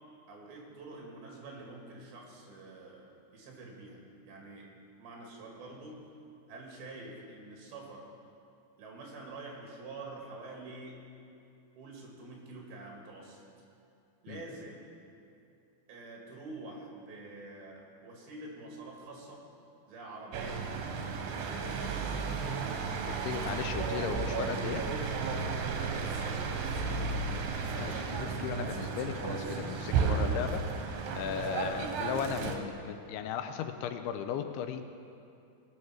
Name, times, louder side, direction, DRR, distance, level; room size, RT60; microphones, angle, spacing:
voice 1, 0.3-4.0 4.2-4.7 5.0-6.1 6.5-8.1 8.8-11.0 11.8-13.4 14.2-14.9 15.9-19.5 19.9-20.7 21.3-22.4 25.5-27.2, right 2 dB, 70° right, -1 dB, 3.8 m, -47 dB
sound 1, 20.3-32.6, right 5 dB, 85° right, 3.0 m, -33 dB
voice 2, 23.1-24.8 27.8-30.6 31.1-34.8, left 8 dB, 80° left, 8 dB, 2.5 m, -36 dB
19.0 x 6.4 x 5.8 m, 2.6 s
omnidirectional pair, 4.7 m